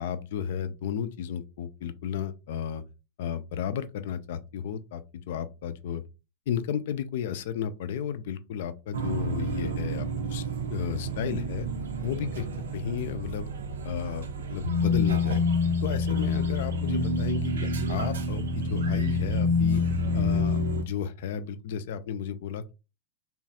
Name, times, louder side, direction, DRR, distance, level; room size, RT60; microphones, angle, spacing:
voice 1, 0.0-2.8 3.2-6.0 6.5-10.4 10.7-11.7 12.0-12.5 12.7-13.5 13.8-15.4 15.8-17.5 17.9-19.8 20.1-22.7, left 8 dB, 55° left, 0.3 m, -33 dB
sound 1, 8.9-20.8, left 2 dB, 65° right, 0.5 m, -28 dB
3.1 x 2.2 x 2.7 m
figure-of-eight pair, 90°, 0 cm